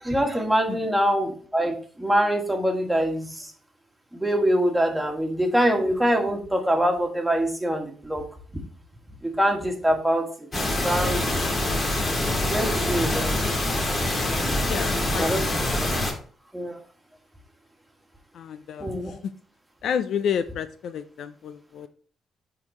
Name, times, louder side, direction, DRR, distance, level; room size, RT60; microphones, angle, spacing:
voice 1, 0.0-3.5 4.1-8.3 9.2-10.3 10.7-11.2 12.4-13.3 15.1-15.4 16.5-16.8 18.8-19.2, equal, 5° right, 2 dB, 1.8 m, -24 dB
sound 1, 10.5-16.1, left 1 dB, 30° left, 2.3 m, -25 dB
voice 2, 14.7-15.7 18.3-18.9 19.8-21.9, left 8 dB, 70° left, 13 dB, 0.4 m, -30 dB
10.5 x 3.9 x 3.0 m, 0.43 s
cardioid pair, 90°, 0 cm